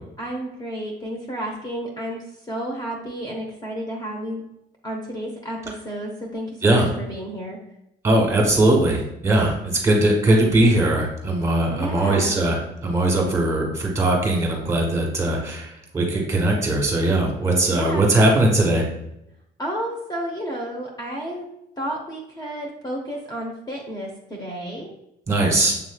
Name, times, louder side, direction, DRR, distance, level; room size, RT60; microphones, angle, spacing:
voice 1, 0.2-4.4 4.8-7.6 11.7-12.3 17.7-18.5 19.6-21.5 21.8-24.9, right 1 dB, 25° left, 0 dB, 0.9 m, -31 dB
voice 2, 8.0-18.8 25.3-25.7, right 1 dB, 15° right, 0 dB, 1.6 m, -20 dB
7.4 x 3.0 x 2.4 m, 0.81 s
cardioid pair, 110°, 17 cm